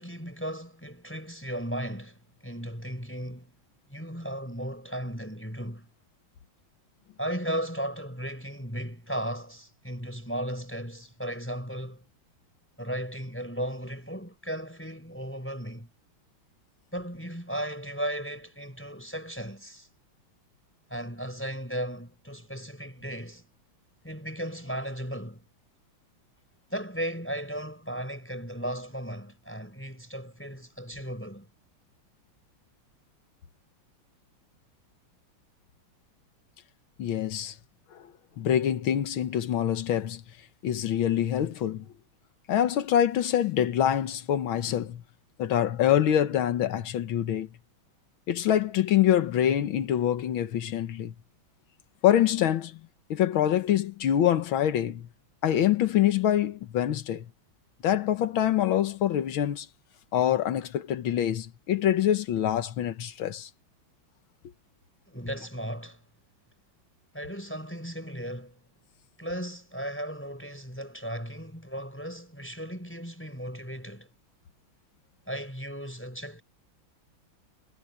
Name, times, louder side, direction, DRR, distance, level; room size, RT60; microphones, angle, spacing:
voice 1, 0.0-3.5 3.9-5.9 7.2-12.0 12.8-15.9 16.9-19.9 20.9-23.4 24.0-25.5 26.7-31.5 65.1-66.0 67.1-68.6 69.2-74.1 75.3-76.4, equal, 5° left, 4.8 m, -36 dB
voice 2, 37.0-37.6 37.9-38.0 38.4-40.2 40.6-41.9 42.5-45.0 45.4-47.5 48.3-51.1 52.0-52.8 53.1-55.1 55.4-57.3 57.8-59.7 60.1-63.5, left 10 dB, 80° left, 1.9 m, -25 dB
omnidirectional pair, 2.2 m